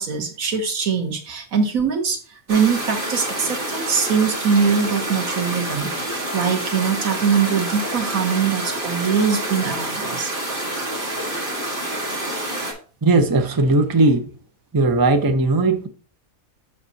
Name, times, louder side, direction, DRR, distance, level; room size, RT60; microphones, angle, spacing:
voice 1, 0.0-10.3, right 6 dB, 85° right, 1.6 m, -22 dB
sound 1, 2.5-12.7, right 1 dB, 40° right, 1.9 m, -27 dB
voice 2, 13.0-14.3 14.7-15.9, right 2 dB, 25° right, 0.6 m, -17 dB
7.3 x 6.0 x 2.7 m
omnidirectional pair, 1.4 m